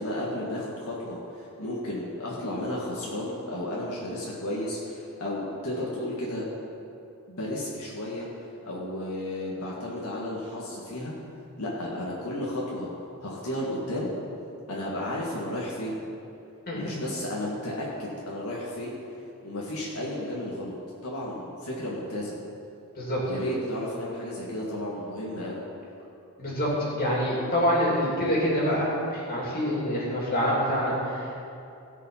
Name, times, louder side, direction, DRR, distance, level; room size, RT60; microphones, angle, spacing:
voice 1, 0.0-6.5 7.3-8.3 8.7-11.1 11.6-12.9 13.2-14.1 14.7-16.0 16.7-19.0 19.4-20.7 21.0-22.4 23.3-25.6, left 1 dB, 80° left, -5 dB, 1.8 m, -33 dB
voice 2, 26.4-31.4, equal, 40° left, -5 dB, 3.0 m, -26 dB
16.5 x 5.7 x 5.7 m, 2.7 s
head